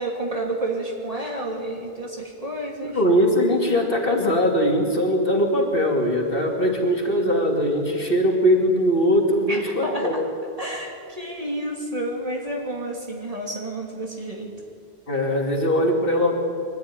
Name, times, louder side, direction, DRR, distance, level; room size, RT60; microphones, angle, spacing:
voice 1, 0.0-3.0 9.5-10.2 10.6-14.5, right 1 dB, 35° right, 0 dB, 3.1 m, -30 dB
voice 2, 2.8-10.3 15.1-16.4, equal, 55° left, 1 dB, 3.0 m, -21 dB
23.0 x 15.0 x 9.9 m, 2.3 s
omnidirectional pair, 1.1 m